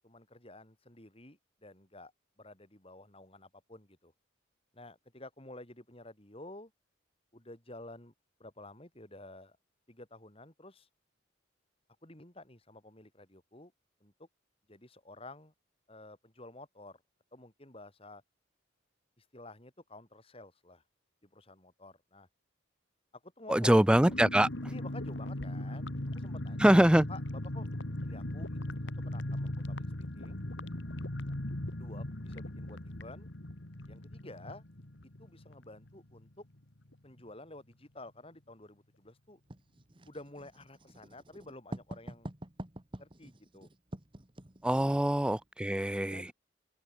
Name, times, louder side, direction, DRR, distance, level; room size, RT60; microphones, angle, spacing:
voice 1, 0.0-2.1 2.4-4.1 4.7-6.7 7.3-8.1 8.4-9.6 9.9-10.9 12.0-13.7 14.0-14.3 14.7-15.5 15.9-17.0 17.3-18.2 19.2-20.8 21.2-22.3 23.2-23.9 24.7-27.2 27.5-27.7 28.0-28.8 29.0-30.4 31.7-33.3 33.9-34.6 35.2-36.4 37.0-39.4 40.1-42.3 43.0-43.7 44.9-45.2 46.1-46.3, left 2 dB, 30° left, 3.6 m, -51 dB
voice 2, 23.5-24.5 26.6-27.1 44.6-46.3, right 1 dB, 5° right, 0.4 m, -24 dB
sound 1, 23.9-36.3 36.5-36.6 36.9-37.2, left 1 dB, 65° left, 2.2 m, -39 dB
Writing, 39.5-45.4, right 1 dB, 25° right, 1.8 m, -47 dB
open air
head